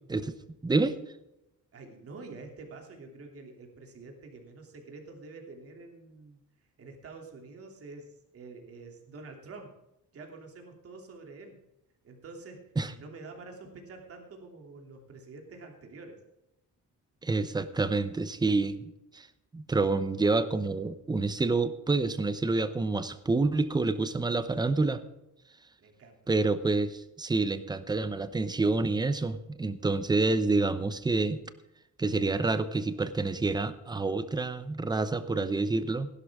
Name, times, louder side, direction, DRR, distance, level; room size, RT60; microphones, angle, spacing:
voice 1, 0.6-1.0 12.8-12.9 17.2-19.3 19.5-25.0 26.3-31.4 32.0-36.1, right 3 dB, 15° right, 12 dB, 0.8 m, -28 dB
voice 2, 1.7-6.4 6.8-9.7 10.1-11.6 12.0-12.6 12.9-16.2 25.8-26.2, right 3 dB, 45° right, 2 dB, 2.9 m, -47 dB
16.5 x 12.0 x 3.6 m, 0.89 s
cardioid pair, 170°, 31 cm